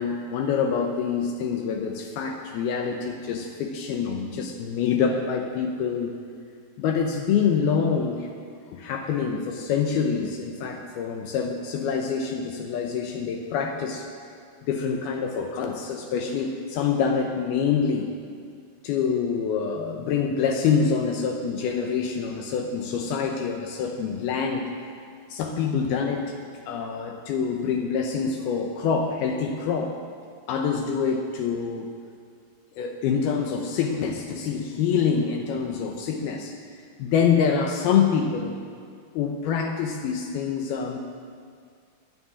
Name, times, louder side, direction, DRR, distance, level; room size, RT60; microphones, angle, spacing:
voice 1, 0.0-6.1 6.8-8.3 8.7-14.1 14.7-18.1 18.8-24.7 25.3-26.3 26.7-30.0 30.5-31.9 32.8-36.5 37.0-38.6 39.1-41.0, left 6 dB, 75° left, 3 dB, 2.6 m, -26 dB
10.0 x 9.5 x 9.7 m, 2.2 s
omnidirectional pair, 4.9 m